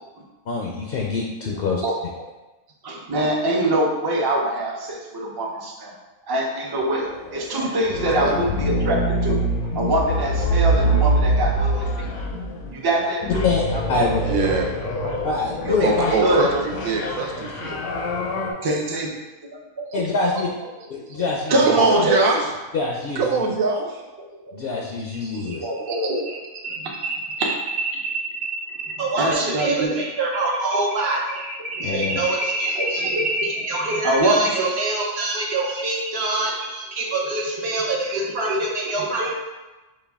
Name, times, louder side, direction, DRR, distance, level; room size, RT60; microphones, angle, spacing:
voice 1, 0.5-2.1 13.4-13.6 13.9-14.2 15.2-16.1 19.9-20.5 20.9-21.9 22.7-23.5 24.5-25.6 31.8-32.2, left 3 dB, 60° left, -1 dB, 0.6 m, -25 dB
voice 2, 2.8-5.9 6.3-8.9 9.2-9.4 9.7-12.1 12.7-13.4 14.9-15.3 15.6-15.9 16.2-16.4 17.4-17.5 18.6-19.1 20.2-20.3 21.0-21.2 21.5-22.3 24.2-24.6 25.4-26.3 26.8-26.9 29.2-30.0 31.8-32.0 32.8-33.2 34.0-34.7 39.0-39.1, right 1 dB, 35° right, -2 dB, 0.4 m, -24 dB
sound 1, 6.8-18.5, right 1 dB, 80° left, 1.1 m, -25 dB
voice 3, 14.2-14.7 15.8-16.5 16.8-17.8 21.6-22.4 23.2-23.9, right 4 dB, 85° right, 0 dB, 1.1 m, -22 dB
voice 4, 25.1-26.4 26.6-39.3, right 2 dB, 60° right, -1 dB, 0.8 m, -26 dB
5.2 x 2.3 x 3.4 m, 1.1 s
omnidirectional pair, 1.4 m